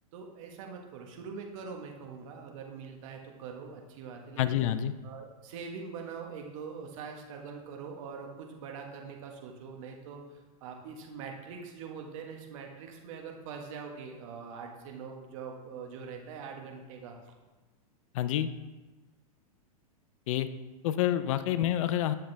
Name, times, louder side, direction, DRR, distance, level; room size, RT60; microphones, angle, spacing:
voice 1, 0.1-4.6 5.0-10.2 10.6-17.1 21.5-21.7, right 5 dB, 55° right, 2 dB, 1.6 m, -43 dB
voice 2, 4.4-4.9 18.1-18.5 20.3-20.5 20.8-22.1, left 12 dB, 55° left, 13 dB, 0.6 m, -28 dB
9.9 x 6.6 x 3.4 m, 1.2 s
hypercardioid pair, 120°, 19 cm